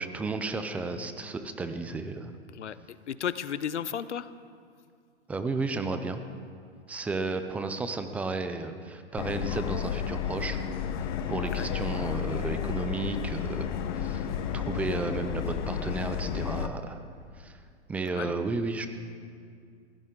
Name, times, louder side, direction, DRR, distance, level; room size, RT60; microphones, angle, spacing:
voice 1, 0.0-2.3 5.3-6.2 6.9-10.6 11.3-13.7 13.9-14.3 14.5-17.0 17.4-17.6 17.9-18.9, right 3 dB, 5° right, 9 dB, 0.4 m, -33 dB
voice 2, 2.5-4.3 11.5-11.7 18.1-18.3, left 8 dB, 90° left, 15 dB, 0.8 m, -34 dB
Subway metro underground, 9.2-16.7, left 8 dB, 45° left, 1.0 m, -32 dB
21.5 x 16.0 x 3.8 m, 2.2 s
hypercardioid pair, 130°, 34 cm